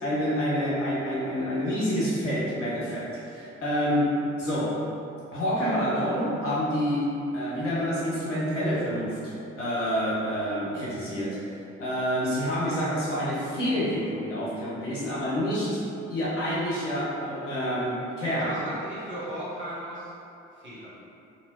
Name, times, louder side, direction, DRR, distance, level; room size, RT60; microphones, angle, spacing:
voice 1, 0.0-4.8 5.3-15.8 16.1-18.5, equal, 85° left, -8 dB, 0.7 m, -28 dB
voice 2, 18.2-20.1 20.6-20.9, right 1 dB, 35° right, -10 dB, 1.4 m, -36 dB
2.9 x 2.7 x 2.8 m, 2.7 s
figure-of-eight pair, 45°, 36 cm